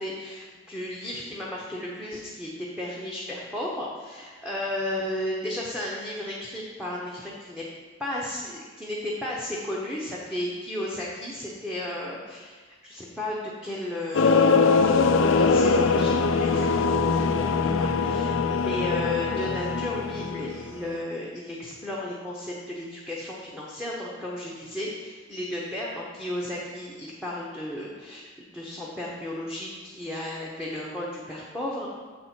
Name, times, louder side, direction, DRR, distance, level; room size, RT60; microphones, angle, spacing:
voice 1, 0.0-7.6 8.0-12.6 12.8-15.0 15.3-31.9, left 1 dB, 5° right, -5 dB, 0.8 m, -34 dB
sound 1, 14.1-20.8, left 4 dB, 70° left, 0.4 m, -22 dB
7.1 x 4.2 x 5.9 m, 1.4 s
head